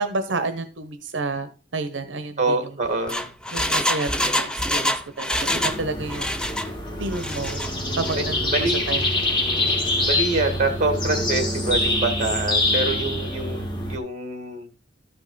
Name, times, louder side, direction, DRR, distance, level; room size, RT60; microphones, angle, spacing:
voice 1, 0.0-2.7 3.5-6.3 6.6-7.6 7.9-8.5 8.9-9.1 10.1-10.2, right 3 dB, 85° right, 9 dB, 0.8 m, -30 dB
voice 2, 2.4-3.3 8.1-8.2 8.5-8.8 10.1-14.7, right 2 dB, 40° right, 7 dB, 2.0 m, -25 dB
Engine, 2.8-5.8 6.1-6.7 7.1-7.7 8.0-8.1, left 1 dB, 5° left, 0.6 m, -25 dB
sound 1, 5.5-14.0, left 1 dB, 25° left, 2.2 m, -25 dB
13.0 x 5.3 x 4.0 m, 0.33 s
head